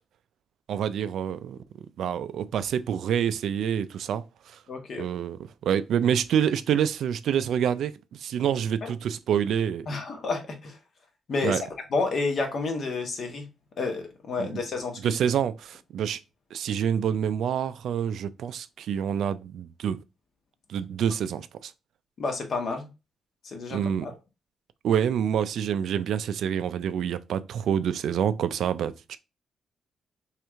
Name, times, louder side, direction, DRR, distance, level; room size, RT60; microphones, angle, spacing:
voice 1, 0.7-1.6 2.0-4.2 5.0-9.9 11.4-11.6 14.4-14.5 15.0-16.2 16.5-20.0 20.7-21.7 23.7-24.1 24.8-29.2, right 8 dB, 75° right, 0.3 m, -27 dB
voice 2, 4.7-5.0 8.8-8.9 9.9-10.8 11.3-11.6 11.9-13.5 13.8-15.2 22.2-22.9 23.4-24.2, left 3 dB, 55° left, 1.1 m, -30 dB
3.2 x 3.0 x 3.5 m
cardioid pair, 125°, 0 cm